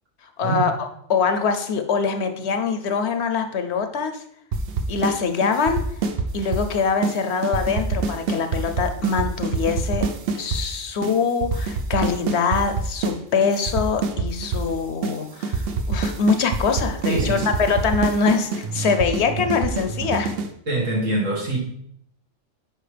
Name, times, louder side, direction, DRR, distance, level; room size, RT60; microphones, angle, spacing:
voice 1, 0.4-4.2 4.9-5.8 6.3-10.1 10.3-20.4, left 5 dB, 65° left, 7 dB, 0.9 m, -23 dB
sound 1, 4.5-5.2 5.4-6.7 7.0-7.2 7.4-10.6 11.0-11.1 11.4-13.2 13.4-14.7 15.0-15.1 15.4-20.5, right 4 dB, 60° right, 0.8 m, -25 dB
voice 2, 17.1-17.5 20.7-21.6, right 2 dB, 85° right, -2 dB, 2.1 m, -24 dB
9.1 x 4.9 x 3.4 m, 0.71 s
omnidirectional pair, 1.3 m